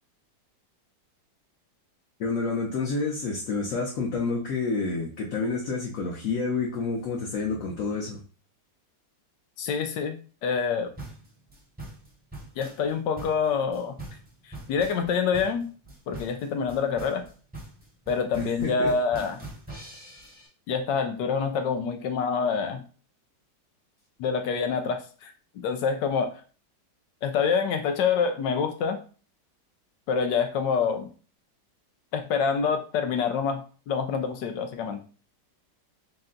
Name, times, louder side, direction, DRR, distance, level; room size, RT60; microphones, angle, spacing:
voice 1, 2.2-8.2 18.6-18.9, left 4 dB, 60° left, -2 dB, 0.9 m, -29 dB
voice 2, 9.6-10.1 10.4-10.9 12.6-14.0 14.7-15.7 16.1-17.2 18.1-19.4 20.7-22.8 24.2-25.3 25.6-26.3 27.2-29.0 30.1-31.1 32.1-35.0, left 6 dB, 80° left, 6 dB, 1.3 m, -26 dB
sound 1, 11.0-20.5, right 2 dB, 10° right, 0.7 m, -43 dB
4.1 x 2.2 x 3.7 m, 0.38 s
omnidirectional pair, 1.9 m